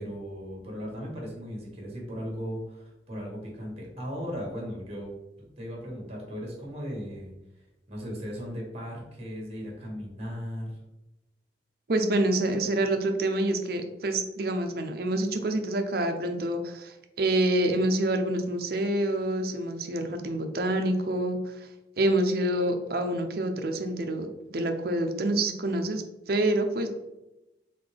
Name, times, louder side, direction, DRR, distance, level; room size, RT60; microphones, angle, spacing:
voice 1, 0.0-5.1 5.4-7.3 7.9-10.8, equal, 35° right, -2 dB, 1.5 m, -37 dB
voice 2, 11.9-21.5 22.0-26.9, right 1 dB, 60° right, 6 dB, 0.6 m, -27 dB
4.2 x 3.8 x 3.3 m, 0.96 s
head